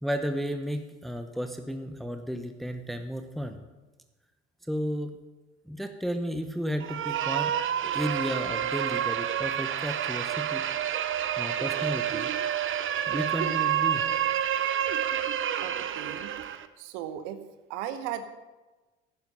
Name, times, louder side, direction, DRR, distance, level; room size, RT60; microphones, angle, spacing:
voice 1, 0.0-3.6 4.7-5.1 5.7-7.5 7.9-10.6 11.4-12.3 13.1-14.0, equal, ahead, 7 dB, 1.0 m, -33 dB
sound 1, 6.8-16.7, right 10 dB, 40° right, 0.7 m, -29 dB
voice 2, 15.6-16.3 16.8-17.4 17.7-18.3, right 10 dB, 70° right, 11 dB, 1.1 m, -36 dB
10.5 x 10.5 x 5.3 m, 1.2 s
hypercardioid pair, 65°, 32 cm